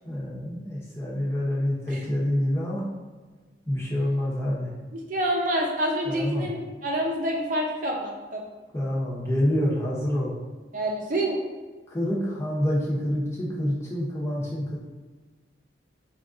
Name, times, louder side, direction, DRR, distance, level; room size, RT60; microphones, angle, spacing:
voice 1, 0.0-2.9 3.7-4.7 6.1-6.5 8.7-10.3 11.9-14.8, left 1 dB, 15° left, -6 dB, 1.0 m, -27 dB
voice 2, 4.9-8.4 10.7-11.4, right 1 dB, 45° right, -1 dB, 0.7 m, -27 dB
5.0 x 2.5 x 3.8 m, 1.3 s
head